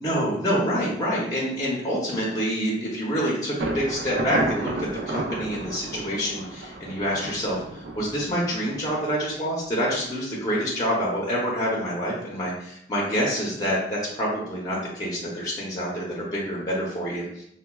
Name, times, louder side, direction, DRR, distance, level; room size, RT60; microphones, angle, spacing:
voice 1, 0.0-17.4, equal, 20° left, -5 dB, 0.6 m, -27 dB
Thunder, 3.6-9.3, right 2 dB, 70° right, 0.4 m, -32 dB
4.2 x 2.2 x 2.2 m, 0.74 s
head